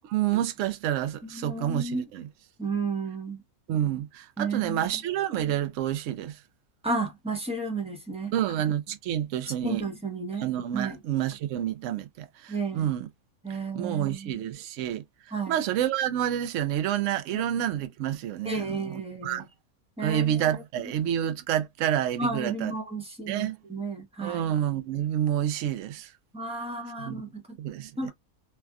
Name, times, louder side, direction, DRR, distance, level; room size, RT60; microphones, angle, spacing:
voice 1, 0.0-2.3 3.7-6.4 8.3-9.8 10.4-13.1 13.7-15.0 15.5-19.5 20.0-22.7 23.3-23.6 24.2-26.1 27.0-27.2 27.6-28.1, right 11 dB, 65° right, 0.8 m, -29 dB
voice 2, 1.2-2.0 2.6-3.4 4.4-5.0 6.8-8.3 9.6-10.5 10.7-11.0 12.5-12.9 13.4-14.3 15.3-15.6 17.3-17.4 18.4-19.4 20.0-20.4 22.2-24.5 26.3-27.6 28.0-28.1, right 3 dB, 5° right, 0.6 m, -32 dB
3.3 x 2.2 x 2.3 m
omnidirectional pair, 1.6 m